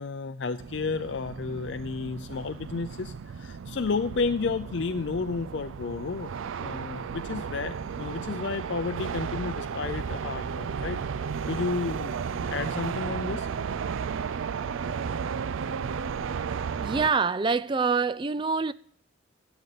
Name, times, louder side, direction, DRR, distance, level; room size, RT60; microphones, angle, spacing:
voice 1, 0.0-13.5 14.6-14.7, left 4 dB, 60° left, 0.5 m, -32 dB
sound 1, 0.6-17.1, right 6 dB, 85° right, 0.4 m, -34 dB
voice 2, 16.8-18.7, right 4 dB, 25° right, 0.3 m, -25 dB
14.5 x 8.0 x 4.0 m
head